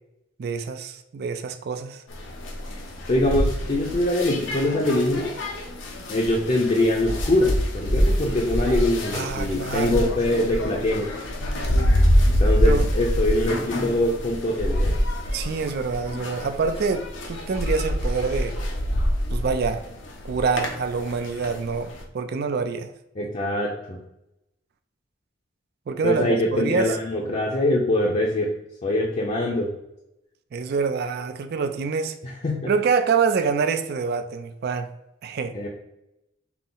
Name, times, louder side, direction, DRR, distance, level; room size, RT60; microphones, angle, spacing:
voice 1, 0.4-2.0 9.1-10.1 12.6-12.9 15.3-18.6 19.3-19.8 20.3-21.9 22.1-22.9 25.9-27.0 30.5-32.1 32.7-34.9 35.2-35.5, right 5 dB, 55° right, 8 dB, 0.4 m, -26 dB
sound 1, 2.1-22.0, equal, 90° left, 0.8 m, -26 dB
voice 2, 3.1-5.3 6.1-11.1 12.4-15.0 23.2-24.0 26.0-28.5 28.8-29.7 32.2-32.7 35.5-35.7, left 1 dB, 35° left, -2 dB, 0.6 m, -23 dB
5.8 x 2.0 x 3.7 m, 0.87 s
head